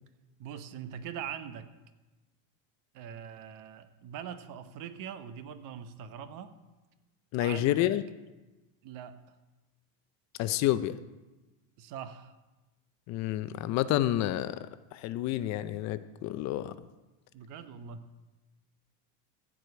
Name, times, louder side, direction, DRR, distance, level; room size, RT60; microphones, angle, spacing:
voice 1, 0.4-1.7 2.9-6.5 7.4-7.9 8.8-9.2 11.8-12.3 17.3-18.1, right 8 dB, 50° right, 10 dB, 1.1 m, -42 dB
voice 2, 7.3-8.0 10.4-11.0 13.1-14.6 14.9-16.7, left 14 dB, 45° left, 13 dB, 0.5 m, -29 dB
14.5 x 5.0 x 7.9 m, 1.1 s
supercardioid pair, 135°, 40 cm